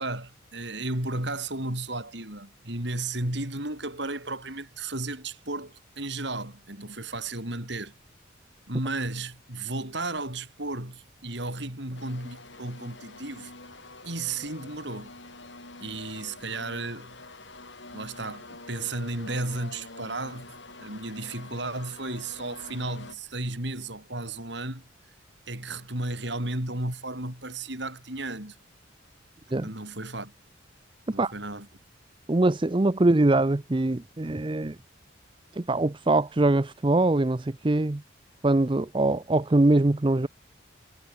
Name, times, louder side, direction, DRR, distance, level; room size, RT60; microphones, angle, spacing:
voice 1, 0.0-7.9 8.7-13.5 14.0-15.1 15.8-17.2 17.9-24.9 25.5-28.6 29.6-30.3 31.1-31.7, right 2 dB, 60° right, 5.3 m, -34 dB
sound 1, 11.9-23.1, left 2 dB, 60° left, 6.2 m, -46 dB
voice 2, 32.3-34.8 35.5-38.0 38.4-40.3, right 2 dB, 25° right, 0.5 m, -23 dB
head